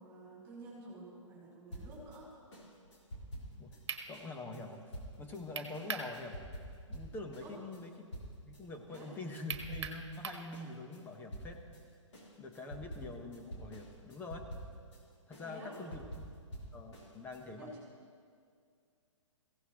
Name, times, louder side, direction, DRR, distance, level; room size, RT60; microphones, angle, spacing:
voice 1, 0.0-2.3 7.4-7.6 8.9-9.1 15.4-15.9 17.6-17.9, right 1 dB, 10° right, -7 dB, 4.3 m, -50 dB
sound 1, 1.7-8.6 8.9-10.2 10.5-17.4, equal, 65° left, 3.8 m, -48 dB
sound 2, 3.5-3.6 3.9-4.1 5.6-6.1 6.5-6.6 9.5-10.5, right 6 dB, 60° right, 1.4 m, -39 dB
voice 2, 4.1-6.4 6.9-8.1 8.5-11.6 12.4-14.5 15.3-16.0 16.7-17.8, left 2 dB, 10° left, 3 dB, 1.0 m, -45 dB
22.5 x 16.0 x 3.0 m, 2.2 s
figure-of-eight pair, 125°, 16 cm